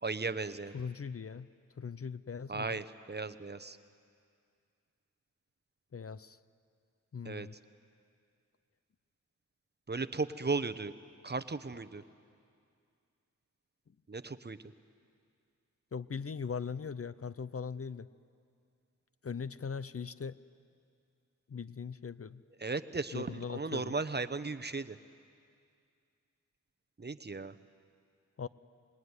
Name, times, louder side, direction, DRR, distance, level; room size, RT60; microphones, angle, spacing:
voice 1, 0.0-0.7 2.5-3.8 7.2-7.5 9.9-10.9 11.2-12.0 14.1-14.6 22.6-25.0 27.0-27.5, right 3 dB, 35° right, 11 dB, 0.9 m, -36 dB
voice 2, 0.7-1.5 1.8-2.8 5.9-6.4 7.1-7.6 15.9-18.1 19.2-20.4 21.5-22.4 23.1-23.9 28.4-28.5, left 6 dB, 50° left, 15 dB, 0.7 m, -40 dB
26.0 x 21.0 x 9.7 m, 2.3 s
wide cardioid pair, 60°, 30 cm